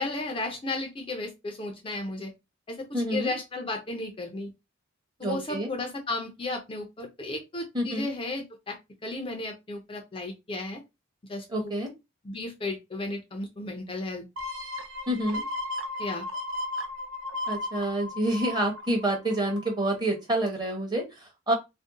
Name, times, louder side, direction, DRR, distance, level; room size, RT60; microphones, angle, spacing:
voice 1, 0.0-2.3 2.7-4.5 5.2-10.8 11.3-11.7 12.2-14.2 16.0-16.3, left 2 dB, 25° left, 2 dB, 0.5 m, -34 dB
voice 2, 2.9-3.3 5.2-5.7 7.7-8.1 11.5-11.9 15.1-15.4 17.5-21.5, right 1 dB, 20° right, 1 dB, 0.8 m, -28 dB
sound 1, 14.4-19.8 20.3-20.4, left 2 dB, 75° right, 0.6 m, -35 dB
2.6 x 2.1 x 3.6 m, 0.23 s
head